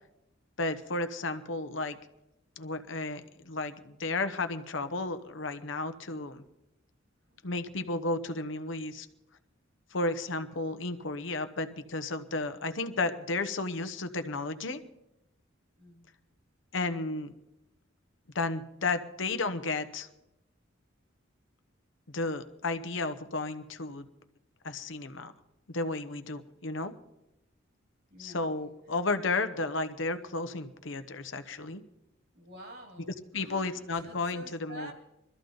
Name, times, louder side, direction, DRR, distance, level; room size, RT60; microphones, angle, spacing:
voice 1, 0.6-2.0 2.6-3.2 3.5-6.4 7.4-9.1 9.9-14.8 16.7-17.3 18.3-20.1 22.1-24.1 24.6-25.3 25.7-26.9 28.2-31.8 33.3-34.9, left 3 dB, 65° left, 10 dB, 1.0 m, -33 dB
voice 2, 15.8-16.1 28.1-28.5 32.3-34.9, right 1 dB, 55° right, 4 dB, 2.5 m, -48 dB
22.0 x 13.5 x 4.0 m, 0.88 s
head